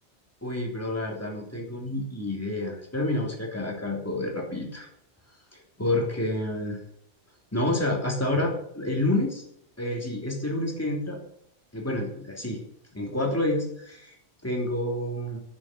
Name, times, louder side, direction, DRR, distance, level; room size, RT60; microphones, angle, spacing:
voice 1, 0.4-4.9 5.5-6.8 7.5-9.4 9.8-11.2 11.7-12.6 12.9-14.1 14.4-15.4, left 1 dB, 10° left, -1 dB, 3.2 m, -29 dB
10.0 x 9.6 x 6.8 m, 0.69 s
omnidirectional pair, 1.2 m